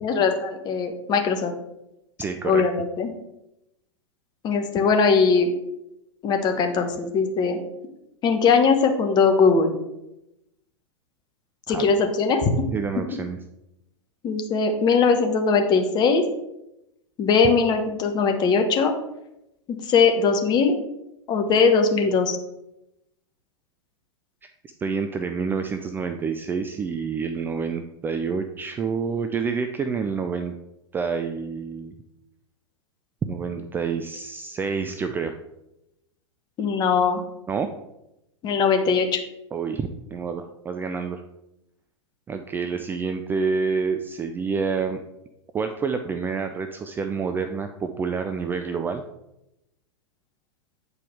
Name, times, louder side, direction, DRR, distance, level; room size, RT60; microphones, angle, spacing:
voice 1, 0.0-1.5 2.4-3.1 4.4-5.5 6.2-7.6 8.2-9.7 11.7-12.4 14.2-16.2 17.2-18.9 19.7-20.7 21.3-22.4 36.6-37.2 38.4-39.2, left 5 dB, 25° left, 5 dB, 1.0 m, -20 dB
voice 2, 2.2-2.6 11.7-11.9 12.7-13.4 24.4-24.5 24.8-30.5 30.9-31.9 33.2-35.4 37.5-37.7 39.5-41.2 42.3-45.0 45.5-49.0, right 5 dB, 15° right, 6 dB, 0.3 m, -28 dB
8.4 x 4.7 x 3.5 m, 0.88 s
figure-of-eight pair, 95°, 16 cm